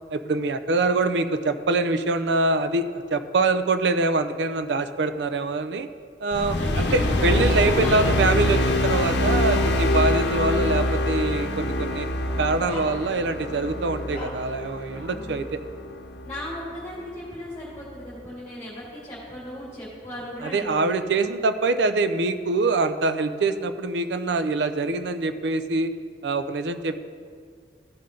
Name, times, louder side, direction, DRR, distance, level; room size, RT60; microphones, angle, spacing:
voice 1, 0.1-5.9 6.2-12.1 12.4-15.6 20.4-25.9 26.2-27.0, right 3 dB, 75° right, 10 dB, 0.5 m, -24 dB
sound 1, 6.3-16.8, left 1 dB, 75° left, 0.8 m, -25 dB
voice 2, 6.6-8.5 14.9-15.4 16.2-21.1, left 1 dB, 15° left, -8 dB, 2.2 m, -37 dB
Bark, 7.3-8.4 9.0-10.2 10.6-10.8 11.9-12.1 12.6-13.4 14.1-14.5, left 2 dB, 35° left, 1.6 m, -39 dB
15.0 x 5.7 x 3.8 m, 2.1 s
head